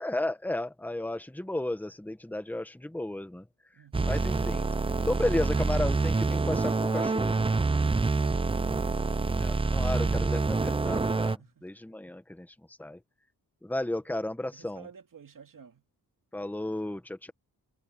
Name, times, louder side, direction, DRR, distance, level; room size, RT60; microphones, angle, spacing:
voice 1, 0.0-3.5 4.0-4.6 5.1-7.5 9.4-12.5 12.8-13.0 13.6-14.9 16.3-17.3, left 1 dB, 5° left, 1.3 m, -33 dB
voice 2, 3.7-4.2 11.4-11.8 14.5-15.8, right 7 dB, 55° right, 2.4 m, -52 dB
sound 1, 3.9-11.4, right 3 dB, 15° right, 0.4 m, -27 dB
wide cardioid pair, 150°, 39 cm